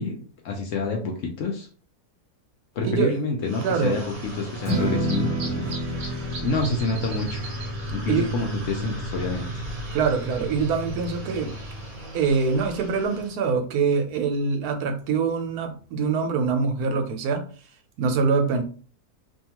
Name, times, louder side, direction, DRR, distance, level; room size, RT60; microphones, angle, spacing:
voice 1, 0.0-1.7 2.8-5.7 6.4-7.4 7.9-9.6, left 3 dB, 70° left, 2 dB, 0.8 m, -28 dB
voice 2, 2.8-3.1 3.6-4.0 5.7-5.8 8.1-8.3 9.9-11.5 12.1-17.4 18.0-18.6, right 5 dB, 75° right, 5 dB, 1.0 m, -24 dB
sound 1, 3.4-13.3, right 1 dB, 50° right, 0.9 m, -35 dB
Strum, 4.6-10.9, right 1 dB, 15° left, 0.5 m, -31 dB
2.7 x 2.3 x 2.8 m, 0.40 s
omnidirectional pair, 1.7 m